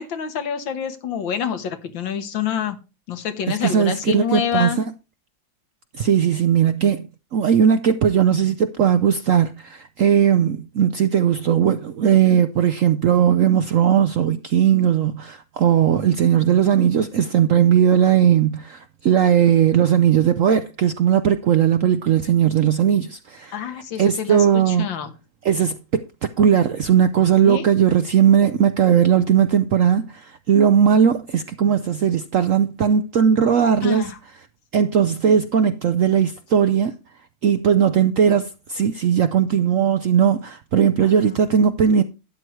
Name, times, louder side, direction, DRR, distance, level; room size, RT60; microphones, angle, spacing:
voice 1, 0.0-2.8 3.1-4.8 23.5-25.1 27.4-27.6 33.8-34.2 41.0-41.4, left 8 dB, 85° left, 2.0 m, -27 dB
voice 2, 3.5-4.7 6.0-23.7 24.0-24.9 25.4-26.0 26.4-34.1 34.7-36.9 37.4-42.0, right 8 dB, 70° right, 0.7 m, -18 dB
12.0 x 9.3 x 3.1 m
omnidirectional pair, 2.0 m